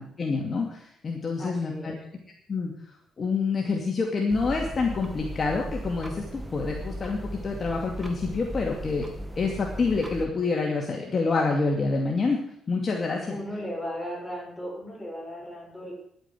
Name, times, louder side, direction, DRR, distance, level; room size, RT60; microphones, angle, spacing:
voice 1, 0.0-1.9 2.5-2.7 3.2-9.1 9.4-12.4 12.7-13.4, left 4 dB, 40° left, 0 dB, 2.4 m, -27 dB
voice 2, 1.4-2.0 13.3-15.9, equal, 10° left, -1 dB, 6.4 m, -36 dB
sound 1, 4.3-10.3, equal, 10° right, 2.0 m, -37 dB
11.0 x 9.2 x 8.4 m, 0.70 s
cardioid pair, 90°, 0 cm